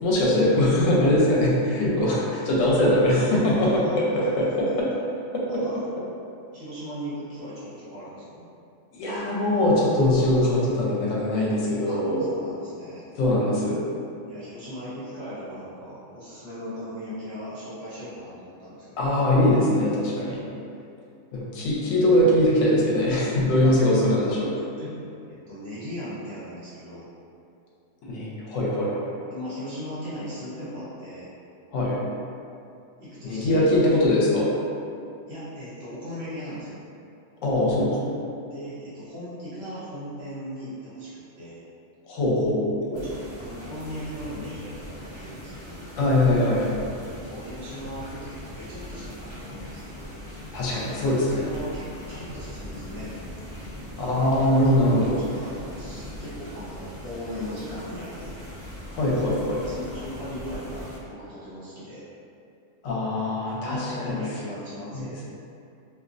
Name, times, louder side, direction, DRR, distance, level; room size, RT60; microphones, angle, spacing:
voice 1, 0.0-3.7 3.9-4.9 8.9-12.3 13.2-13.8 19.0-20.4 21.3-24.5 28.1-29.1 31.7-32.0 33.2-34.5 37.4-38.1 42.1-43.0 46.0-46.7 50.5-51.5 54.0-55.2 58.9-59.6 62.8-64.1 64.9-65.2, left 1 dB, 80° left, -5 dB, 1.0 m, -22 dB
voice 2, 3.4-4.8 5.5-5.8 6.5-8.4 11.8-13.1 14.3-19.0 23.6-24.3 24.8-24.9 25.3-27.1 29.3-31.3 33.0-33.9 35.3-36.8 38.4-41.6 42.9-45.9 47.1-50.1 51.4-53.3 53.9-54.1 54.6-54.8 55.2-58.4 59.6-62.0 63.5-65.2, equal, 50° right, -11 dB, 1.0 m, -38 dB
sound 1, 42.9-61.0, left 1 dB, 30° right, 0.6 m, -40 dB
2.5 x 2.0 x 2.5 m, 2.6 s
omnidirectional pair, 1.3 m